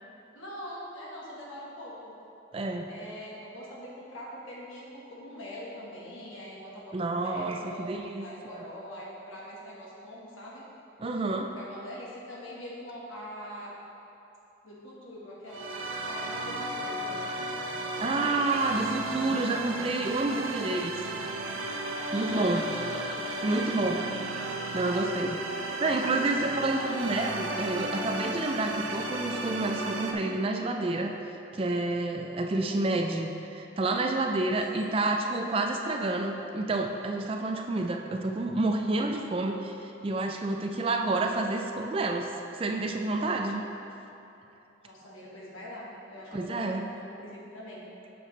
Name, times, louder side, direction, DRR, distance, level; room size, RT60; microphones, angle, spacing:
voice 1, 0.3-2.1 2.9-10.6 11.6-13.7 14.6-15.7 16.0-17.4 18.0-18.8 22.2-23.0 34.7-35.0 44.8-47.8, equal, 85° left, -5 dB, 1.4 m, -43 dB
voice 2, 2.5-2.9 6.9-8.3 11.0-11.6 18.0-21.0 22.1-22.7 23.4-24.0 24.7-25.4 25.8-31.1 31.5-39.7 40.0-42.3 42.6-43.6 46.3-46.9, right 2 dB, 30° right, 3 dB, 0.3 m, -29 dB
sound 1, 15.5-30.1, right 2 dB, 90° right, 0.6 m, -34 dB
Laughter, 21.7-24.8, right 1 dB, 5° right, 0.8 m, -46 dB
7.7 x 5.7 x 3.2 m, 2.9 s
head